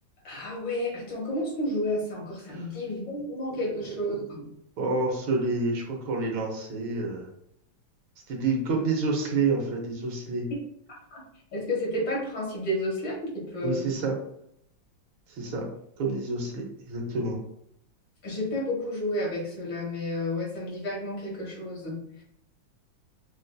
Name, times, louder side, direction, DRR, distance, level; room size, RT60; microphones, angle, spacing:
voice 1, 0.2-4.5 11.1-11.2 11.5-13.8 18.2-22.2, left 1 dB, 65° left, -3 dB, 2.1 m, -31 dB
voice 2, 4.8-7.3 8.3-10.5 13.6-14.2 15.3-15.7 16.0-17.4, right 3 dB, 85° right, 1 dB, 1.7 m, -28 dB
5.8 x 2.6 x 2.3 m, 0.74 s
omnidirectional pair, 2.1 m